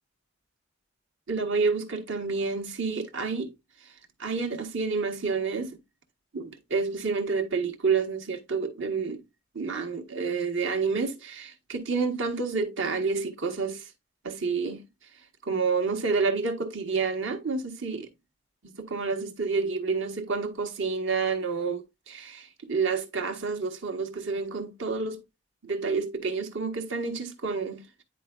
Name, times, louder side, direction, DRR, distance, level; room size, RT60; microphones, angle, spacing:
voice 1, 1.3-3.5 3.8-3.9 4.2-5.8 6.3-9.2 9.5-13.9 14.2-14.8 15.4-18.1 18.6-25.2 25.6-28.0, right 4 dB, 60° right, 1.3 m, -29 dB
9.9 x 4.4 x 2.4 m
head